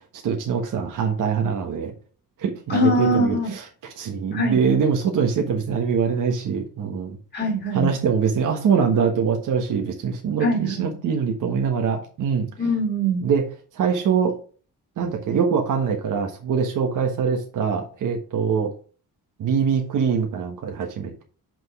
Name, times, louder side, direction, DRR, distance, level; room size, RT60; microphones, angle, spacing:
voice 1, 0.2-1.9 2.4-3.6 4.0-7.2 7.7-12.5 13.2-13.5 13.7-14.4 15.0-18.7 19.4-21.2, right 6 dB, 65° right, 2 dB, 1.4 m, -23 dB
voice 2, 2.7-3.5 4.3-4.7 7.3-7.9 10.4-10.9 12.6-13.2, equal, 30° left, -2 dB, 3.2 m, -22 dB
6.1 x 5.3 x 4.9 m, 0.38 s
wide cardioid pair, 160°, 34 cm